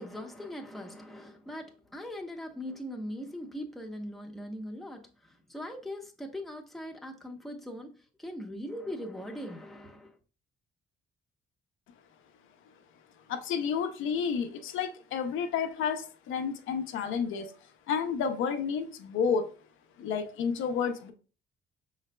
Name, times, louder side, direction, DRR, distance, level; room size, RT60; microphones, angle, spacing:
voice 1, 0.0-5.0 5.5-10.1, equal, ahead, 0.8 m, -40 dB
voice 2, 13.3-17.6 17.9-19.6 20.0-21.1, left 6 dB, 80° left, 0.6 m, -31 dB
5.6 x 3.9 x 2.2 m
cardioid pair, 90°, 20 cm